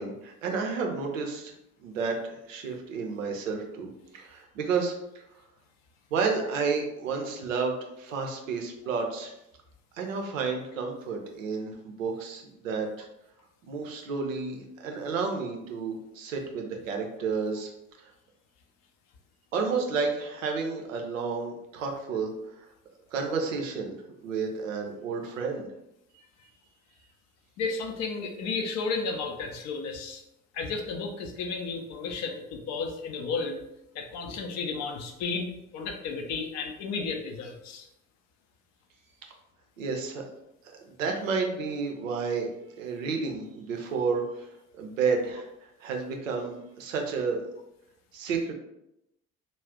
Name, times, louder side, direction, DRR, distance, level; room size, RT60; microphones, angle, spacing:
voice 1, 0.0-1.5 1.8-4.9 6.1-9.3 9.9-13.1 13.7-17.7 19.5-22.3 22.6-22.7 23.1-24.0 24.2-25.7 39.8-40.2 40.8-44.5 44.8-45.5 45.8-47.4 48.1-48.5, right 5 dB, 75° right, 2 dB, 0.5 m, -31 dB
voice 2, 27.6-30.2 30.5-33.6 33.9-37.9, left 4 dB, 45° left, 3 dB, 0.5 m, -33 dB
2.4 x 2.0 x 3.6 m, 0.84 s
figure-of-eight pair, 55°, 40 cm